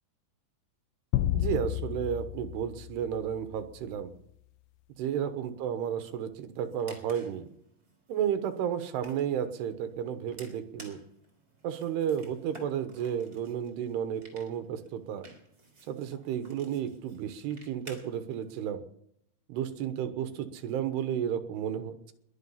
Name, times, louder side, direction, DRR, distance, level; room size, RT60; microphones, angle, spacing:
sound 1, 1.1-3.7, left 14 dB, 80° left, 2.5 m, -32 dB
voice 1, 1.3-4.1 5.0-7.5 8.1-11.0 11.6-15.3 15.9-18.8 19.5-22.1, right 9 dB, 85° right, 9 dB, 3.2 m, -32 dB
sound 2, 6.5-18.5, right 2 dB, 25° right, 3.7 m, -55 dB
21.5 x 10.5 x 5.7 m, 0.73 s
omnidirectional pair, 4.6 m